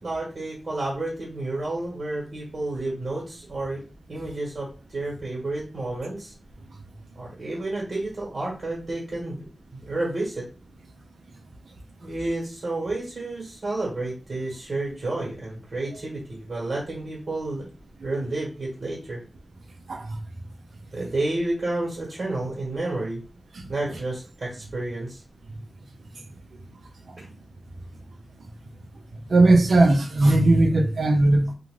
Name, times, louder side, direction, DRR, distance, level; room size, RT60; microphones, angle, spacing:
voice 1, 0.0-3.8 4.1-6.3 7.1-9.5 9.7-10.5 12.0-17.7 18.0-19.2 20.9-23.2 23.7-25.2 27.2-27.3, right 2 dB, 65° right, 1.2 m, -30 dB
voice 2, 29.3-31.5, right 2 dB, 90° right, 0.5 m, -18 dB
2.4 x 2.2 x 3.2 m
cardioid pair, 60°, 0 cm